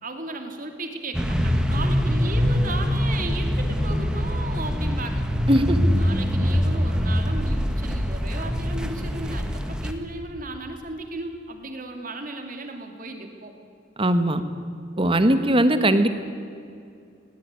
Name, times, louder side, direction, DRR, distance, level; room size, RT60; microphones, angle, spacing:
voice 1, 0.0-5.3 6.0-13.5, right 2 dB, 50° right, 5 dB, 2.9 m, -35 dB
sound 1, 1.1-9.9, equal, 5° right, 1.6 m, -24 dB
voice 2, 5.5-5.9 14.0-14.4 15.0-16.1, right 1 dB, 30° right, 10 dB, 1.5 m, -19 dB
19.5 x 19.0 x 9.7 m, 2.4 s
head